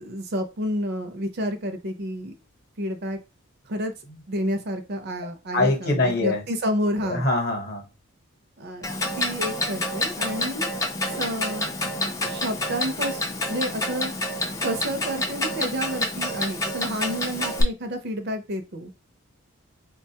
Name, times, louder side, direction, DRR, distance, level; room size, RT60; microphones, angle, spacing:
voice 1, 0.0-2.3 2.8-3.2 3.7-3.9 4.3-7.3 8.6-8.9 9.2-10.7 11.2-11.7 12.2-13.2 13.5-14.1 14.6-18.9, equal, 45° right, 0.5 m, -30 dB
voice 2, 5.5-6.4 7.0-7.8, left 2 dB, 45° left, 0.8 m, -23 dB
Clock, 8.8-17.6, left 1 dB, 15° left, 0.4 m, -28 dB
3.7 x 2.2 x 2.7 m
head